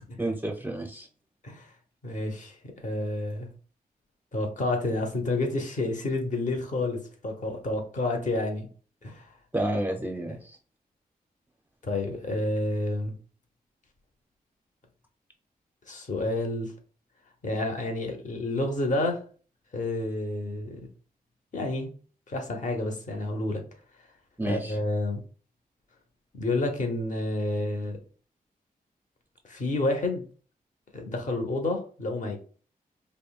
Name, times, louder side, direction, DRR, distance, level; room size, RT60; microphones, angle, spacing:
voice 1, 0.2-1.1 9.5-10.6 24.4-24.8, right 1 dB, 10° right, 3 dB, 0.4 m, -30 dB
voice 2, 2.0-3.5 4.3-8.7 9.0-9.3 11.8-13.2 15.9-16.7 17.4-19.2 19.7-20.8 21.5-21.9 22.3-23.6 24.5-25.2 26.3-28.0 29.4-30.2 30.9-32.4, left 2 dB, 55° left, 3 dB, 0.9 m, -29 dB
5.2 x 2.1 x 2.3 m, 0.40 s
cardioid pair, 80°, 16 cm